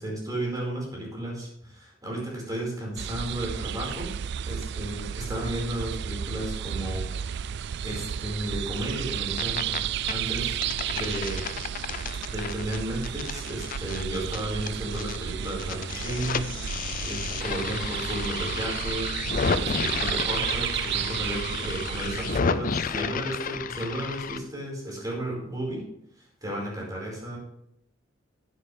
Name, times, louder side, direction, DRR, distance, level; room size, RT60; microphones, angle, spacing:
voice 1, 0.0-4.1 4.4-7.5 7.8-10.6 10.9-11.5 12.3-16.7 17.0-19.1 19.6-25.8 26.4-27.4, right 1 dB, 20° right, -3 dB, 4.7 m, -33 dB
sound 1, 3.0-22.4, right 9 dB, 55° right, 0.3 m, -32 dB
sound 2, 9.1-9.8 10.1-15.2 15.4-24.4, left 5 dB, 40° left, 0.5 m, -32 dB
15.0 x 9.7 x 3.3 m, 0.75 s
head